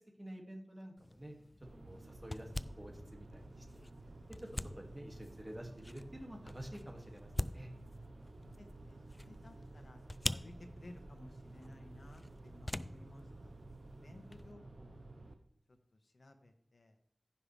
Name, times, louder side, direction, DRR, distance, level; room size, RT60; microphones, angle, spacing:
voice 1, 0.2-1.4 1.8-3.7 4.4-7.7, equal, 25° right, 1 dB, 2.2 m, -49 dB
sound 1, 1.0-14.5, left 1 dB, 30° left, 0.3 m, -46 dB
sound 2, 1.6-15.3, right 2 dB, 90° right, 1.0 m, -53 dB
voice 2, 8.3-13.5 14.0-15.0 15.7-15.8 16.0-17.0, left 1 dB, 75° left, 5 dB, 1.2 m, -58 dB
15.0 x 5.8 x 3.3 m, 0.69 s
wide cardioid pair, 60°, 0 cm